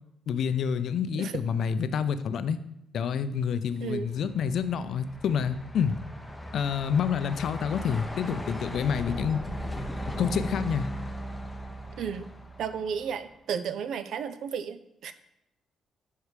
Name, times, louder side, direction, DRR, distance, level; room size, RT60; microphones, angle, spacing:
voice 1, 0.3-2.6 2.9-6.0 6.5-9.4 10.2-10.9, left 7 dB, 65° left, 12 dB, 0.4 m, -28 dB
Truck, 4.0-13.4, equal, 10° left, 0.7 m, -38 dB
voice 2, 12.0-12.3 12.6-15.1, right 7 dB, 70° right, 12 dB, 0.4 m, -33 dB
5.5 x 4.8 x 4.9 m, 0.83 s
cardioid pair, 90°, 0 cm